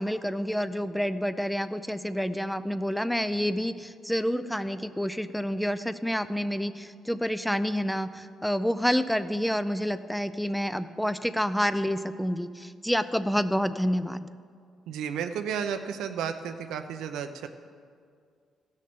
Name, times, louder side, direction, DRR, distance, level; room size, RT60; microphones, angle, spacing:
voice 1, 0.0-14.3, equal, ahead, 12 dB, 0.4 m, -28 dB
voice 2, 14.9-17.5, right 7 dB, 85° right, 7 dB, 0.7 m, -32 dB
15.5 x 6.5 x 6.9 m, 2.2 s
cardioid pair, 90°, 0 cm